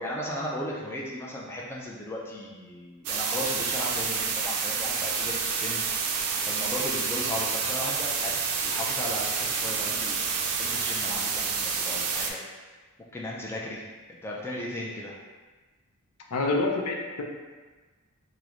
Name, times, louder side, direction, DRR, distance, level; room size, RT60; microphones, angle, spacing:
voice 1, 0.0-5.8 6.5-10.3 10.6-12.4 13.1-13.8 14.2-15.1, left 1 dB, 10° left, -4 dB, 0.3 m, -36 dB
sound 1, 3.1-12.3, right 5 dB, 85° right, 0.4 m, -29 dB
voice 2, 16.3-17.2, left 3 dB, 85° left, 1 dB, 0.5 m, -27 dB
3.6 x 2.0 x 2.9 m, 1.3 s
head